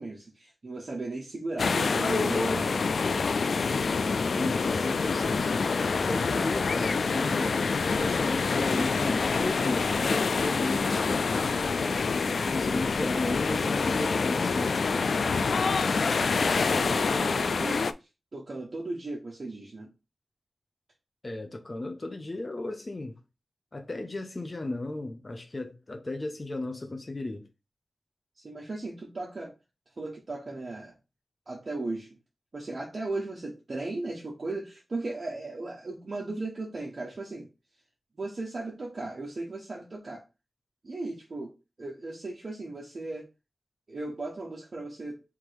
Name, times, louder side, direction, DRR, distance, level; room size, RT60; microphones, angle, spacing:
voice 1, 0.0-2.8 16.4-19.9 28.4-29.5 30.0-30.9 31.5-32.2 32.5-37.5 38.1-40.2 40.8-43.3 43.9-45.2, right 2 dB, 55° right, 1.2 m, -36 dB
sound 1, 1.6-17.9, left 4 dB, 80° left, 0.3 m, -26 dB
voice 2, 4.3-5.4 6.0-7.6 7.9-11.6 12.5-15.7 21.2-23.2 23.7-27.5, left 2 dB, 35° left, 0.8 m, -35 dB
3.6 x 3.1 x 4.7 m
wide cardioid pair, 80°, 0 cm